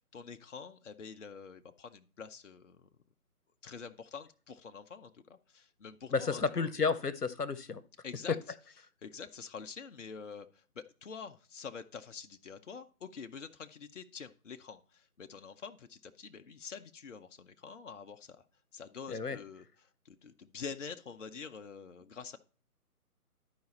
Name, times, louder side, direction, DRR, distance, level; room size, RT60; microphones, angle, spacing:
voice 1, 0.0-2.9 3.6-6.7 8.0-8.4 9.0-18.4 18.7-22.4, left 5 dB, 55° left, 7 dB, 0.7 m, -47 dB
voice 2, 6.1-7.8 19.1-19.4, left 5 dB, 90° left, 14 dB, 1.0 m, -32 dB
11.5 x 4.9 x 4.3 m, 0.39 s
figure-of-eight pair, 145°, 46 cm